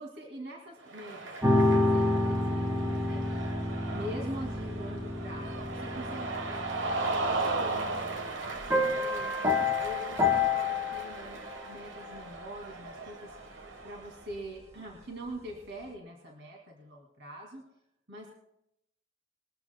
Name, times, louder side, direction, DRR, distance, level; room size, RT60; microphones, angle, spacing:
voice 1, 0.0-3.5 3.9-9.4 9.8-13.6 13.8-17.6 18.1-18.3, equal, 65° right, 0 dB, 2.3 m, -44 dB
Cheering, 0.8-14.3, right 3 dB, 85° right, 1.2 m, -37 dB
sound 1, 1.4-8.1 8.6-11.7, left 2 dB, 15° right, 1.3 m, -29 dB
22.0 x 15.0 x 2.2 m, 0.79 s
head